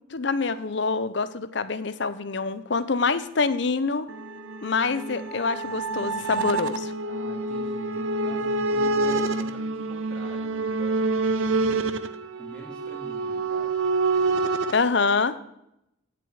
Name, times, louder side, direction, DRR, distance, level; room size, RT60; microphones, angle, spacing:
voice 1, 0.1-4.1 4.6-6.9 14.7-15.4, left 4 dB, 60° left, 14 dB, 0.7 m, -25 dB
sound 1, 4.1-14.8, right 3 dB, 75° right, 0.7 m, -27 dB
voice 2, 7.0-12.0 12.3-13.8, right 1 dB, 5° left, -2 dB, 2.9 m, -45 dB
15.5 x 7.0 x 4.9 m, 0.82 s
head